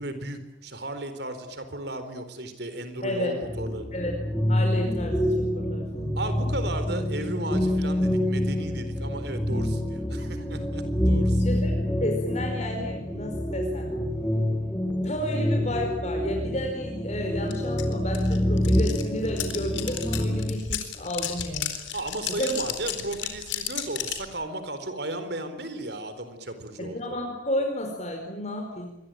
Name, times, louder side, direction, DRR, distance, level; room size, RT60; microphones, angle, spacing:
voice 1, 0.0-3.8 6.2-11.4 21.9-27.1, right 1 dB, 60° right, 10 dB, 4.2 m, -35 dB
voice 2, 3.0-3.3 3.9-4.1 4.5-6.2 11.4-13.9 15.0-21.7 22.4-22.5 26.8-28.9, equal, 35° left, 2 dB, 4.8 m, -32 dB
sound 1, 3.4-20.5, left 1 dB, 5° left, 2.5 m, -27 dB
sound 2, 17.5-17.6 17.8-24.3, left 10 dB, 80° left, 4.1 m, -33 dB
27.0 x 23.0 x 9.2 m, 0.93 s
head